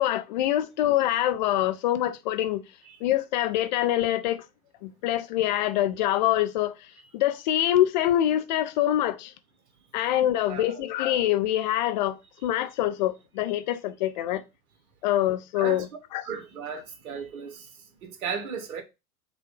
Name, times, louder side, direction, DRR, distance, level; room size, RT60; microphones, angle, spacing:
voice 1, 0.0-2.6 3.0-4.5 4.8-6.8 7.1-9.3 9.9-14.4 15.0-15.9 16.1-16.2, left 13 dB, 35° left, 0.4 m, -25 dB
voice 2, 10.4-10.8 15.6-15.9 16.2-17.7 18.0-18.8, right 6 dB, 65° right, 1.0 m, -35 dB
5.5 x 2.3 x 3.3 m
figure-of-eight pair, 90°, 46 cm